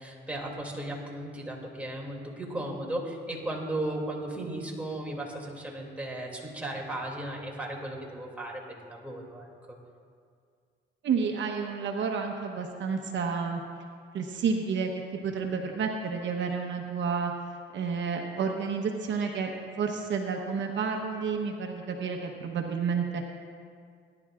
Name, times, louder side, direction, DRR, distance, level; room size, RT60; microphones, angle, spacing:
voice 1, 0.0-9.8, right 1 dB, 5° right, -2 dB, 2.5 m, -36 dB
voice 2, 11.0-13.6 14.1-17.3 17.7-19.5 19.8-23.2, right 5 dB, 65° right, 2 dB, 1.1 m, -30 dB
21.0 x 11.0 x 2.5 m, 2.2 s
cardioid pair, 90°, 20 cm